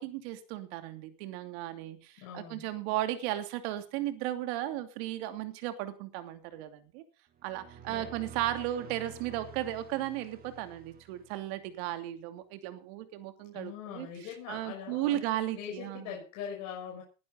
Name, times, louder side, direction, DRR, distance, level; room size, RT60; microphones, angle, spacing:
voice 1, 0.0-7.0 7.4-14.1 14.5-16.1, right 13 dB, 50° right, 9 dB, 2.8 m, -35 dB
voice 2, 2.2-2.7 7.9-8.1 13.5-15.2 15.5-17.0, left 8 dB, 45° left, -1 dB, 5.9 m, -42 dB
sound 1, 7.3-11.7, right 8 dB, 25° right, 1.6 m, -50 dB
20.5 x 11.5 x 3.9 m, 0.35 s
supercardioid pair, 140°, 39 cm